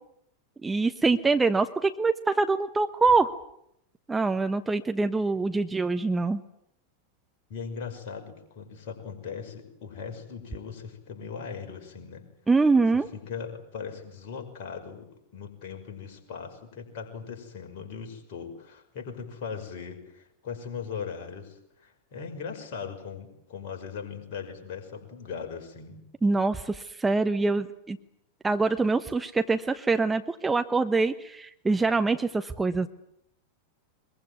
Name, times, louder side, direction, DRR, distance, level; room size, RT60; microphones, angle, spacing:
voice 1, 0.6-3.3 4.1-6.4 12.5-13.1 26.2-28.0 28.4-32.9, right 3 dB, 10° right, 8 dB, 1.1 m, -24 dB
voice 2, 7.5-12.2 12.9-26.0, left 6 dB, 45° left, 4 dB, 5.9 m, -39 dB
23.0 x 22.5 x 9.4 m, 0.75 s
figure-of-eight pair, 90°, 0 cm